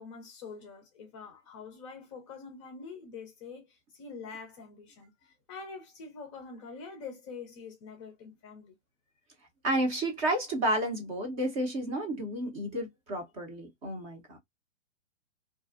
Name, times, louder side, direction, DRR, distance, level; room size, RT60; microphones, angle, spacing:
voice 1, 0.0-8.7, left 5 dB, 25° left, 0.5 m, -45 dB
voice 2, 9.6-14.4, right 1 dB, 25° right, 0.7 m, -31 dB
2.5 x 2.2 x 2.3 m
hypercardioid pair, 140°, 39 cm